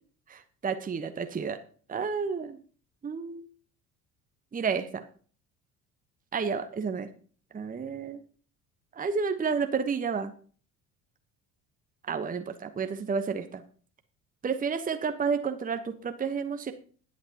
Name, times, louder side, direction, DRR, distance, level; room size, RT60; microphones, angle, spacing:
voice 1, 0.3-1.6 1.9-2.6 3.0-3.5 4.5-5.0 6.3-7.1 7.5-8.2 9.0-10.3 12.1-13.6 14.4-16.7, right 5 dB, 20° right, 8 dB, 1.0 m, -31 dB
21.0 x 8.3 x 2.9 m, 0.42 s
figure-of-eight pair, 60°, 46 cm